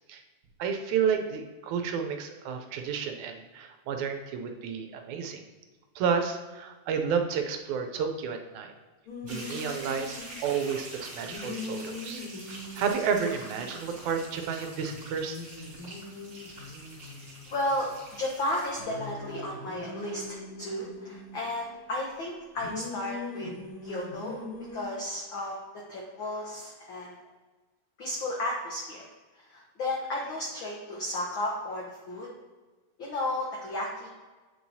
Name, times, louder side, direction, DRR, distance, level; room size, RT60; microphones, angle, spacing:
voice 1, 0.6-5.4 6.0-8.7 9.2-15.4, right 6 dB, 85° right, 5 dB, 2.0 m, -31 dB
sound 1, 9.1-10.7 11.2-14.2 14.4-14.5 14.8-18.2 18.8-21.5 22.6-24.8, left 3 dB, 55° left, 1.8 m, -42 dB
sound 2, 9.3-18.8, right 1 dB, 35° right, 1.8 m, -45 dB
voice 2, 17.5-23.5 23.8-24.4 24.7-27.2 28.0-29.1 29.5-32.3 33.0-34.1, left 1 dB, 90° left, -3 dB, 1.0 m, -33 dB
Piano, 18.8-21.1, left 1 dB, 55° right, 0.8 m, -50 dB
8.5 x 4.6 x 2.7 m, 1.3 s
omnidirectional pair, 3.4 m